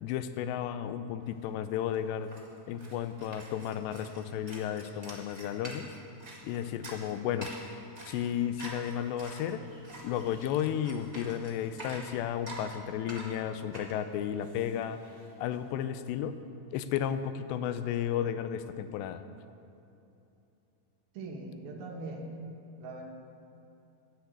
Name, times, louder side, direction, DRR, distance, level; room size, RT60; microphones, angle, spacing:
voice 1, 0.0-2.3 2.7-5.9 6.4-7.5 8.1-9.6 10.0-15.0 15.4-16.4 16.7-19.2, left 9 dB, 85° left, 11 dB, 2.8 m, -33 dB
sound 1, 1.4-1.5 1.7-15.6, right 1 dB, 50° right, 0.4 m, -47 dB
voice 2, 21.1-22.3 22.8-23.0, right 2 dB, 70° right, 0 dB, 2.9 m, -41 dB
10.5 x 10.0 x 8.2 m, 2.8 s
omnidirectional pair, 4.9 m